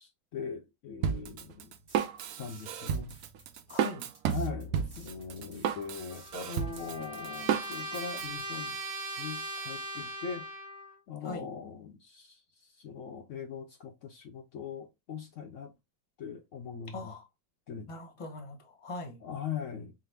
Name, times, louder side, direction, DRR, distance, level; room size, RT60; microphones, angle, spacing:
voice 1, 0.0-1.7 2.4-3.2 4.3-8.8 9.2-10.5 11.1-15.7 16.2-17.1 17.7-17.9 19.2-19.9, left 6 dB, 85° left, 0.6 m, -41 dB
Drum kit, 1.0-8.2, right 8 dB, 80° right, 0.7 m, -32 dB
sound 1, 1.9-8.4, right 3 dB, 35° right, 1.1 m, -55 dB
voice 2, 3.7-4.1 11.2-11.4 16.9-17.3 17.9-19.2, left 2 dB, 25° left, 0.7 m, -41 dB
Trumpet, 6.1-11.0, right 1 dB, 60° right, 1.2 m, -40 dB
5.7 x 2.0 x 3.3 m
omnidirectional pair, 2.0 m